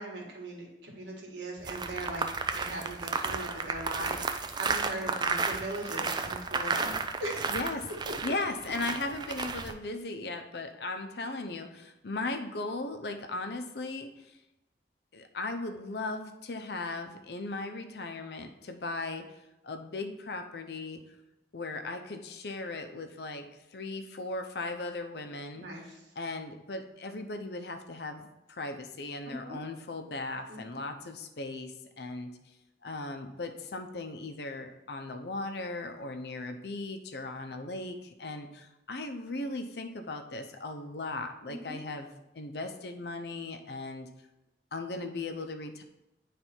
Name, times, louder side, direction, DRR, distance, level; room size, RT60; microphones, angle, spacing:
voice 1, 0.0-7.5 25.5-26.0 29.2-29.6 30.5-30.8 41.5-41.8, right 1 dB, 80° right, -1 dB, 1.8 m, -39 dB
sound 1, 1.6-9.7, right 4 dB, 25° right, 0.3 m, -33 dB
voice 2, 7.5-7.9 8.2-14.4 15.1-19.3 19.6-21.0 21.5-25.7 26.2-32.3 32.8-44.1 44.7-45.8, left 2 dB, 65° left, 6 dB, 0.7 m, -37 dB
9.6 x 3.4 x 4.4 m, 0.94 s
head